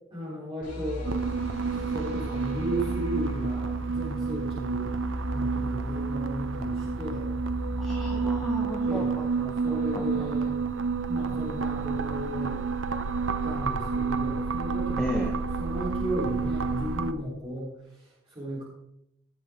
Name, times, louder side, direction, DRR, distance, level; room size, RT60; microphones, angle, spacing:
voice 1, 0.1-1.1 1.9-7.3 8.8-9.2 9.6-10.6 11.1-12.6 13.4-18.6, equal, 25° right, -7 dB, 4.1 m, -35 dB
sound 1, 0.6-9.7, equal, 40° left, 4.5 m, -36 dB
sound 2, 1.0-17.1, right 5 dB, 65° right, 0.6 m, -30 dB
voice 2, 7.8-10.3 15.0-15.3, equal, ahead, -3 dB, 1.5 m, -34 dB
17.5 x 7.3 x 3.8 m, 0.78 s
head